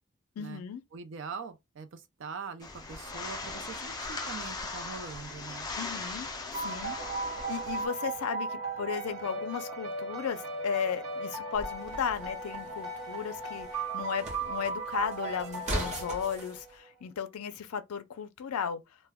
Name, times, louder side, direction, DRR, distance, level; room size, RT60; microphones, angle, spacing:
voice 1, 0.4-0.8 5.8-6.3 6.6-7.0 7.2-18.8, left 7 dB, 90° left, 0.4 m, -35 dB
voice 2, 0.9-5.7, right 5 dB, 55° right, 0.4 m, -43 dB
sound 1, 2.6-7.9, left 3 dB, 20° left, 0.4 m, -39 dB
sound 2, 6.5-16.9, right 3 dB, 85° right, 0.8 m, -37 dB
sound 3, 11.5-16.5, right 1 dB, 30° right, 0.8 m, -40 dB
2.2 x 2.1 x 3.4 m
head